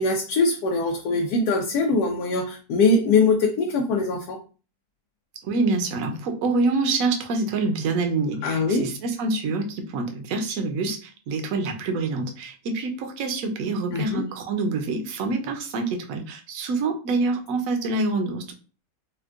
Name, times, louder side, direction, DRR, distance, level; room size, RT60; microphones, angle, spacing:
voice 1, 0.0-4.4 8.4-8.9 13.9-14.2, left 3 dB, 90° left, 1.1 m, -22 dB
voice 2, 5.4-18.5, right 3 dB, 70° right, 1.0 m, -26 dB
4.3 x 2.2 x 2.4 m
omnidirectional pair, 1.6 m